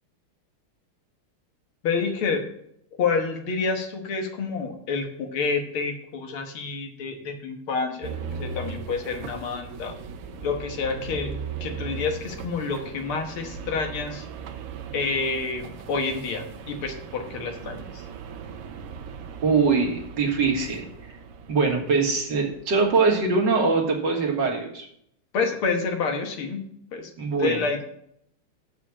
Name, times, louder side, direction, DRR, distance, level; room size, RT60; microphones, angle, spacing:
voice 1, 1.8-2.5 3.0-10.0 10.4-11.3 11.6-14.3 14.9-18.0 25.3-26.7 26.9-27.1 27.4-27.8, left 4 dB, 75° left, 4 dB, 2.1 m, -28 dB
sound 1, 8.0-23.2, right 5 dB, 85° right, 1.7 m, -38 dB
voice 2, 19.4-20.8 21.5-24.9 27.2-27.6, right 4 dB, 55° right, 1 dB, 2.2 m, -22 dB
6.8 x 6.0 x 7.3 m, 0.71 s
omnidirectional pair, 2.4 m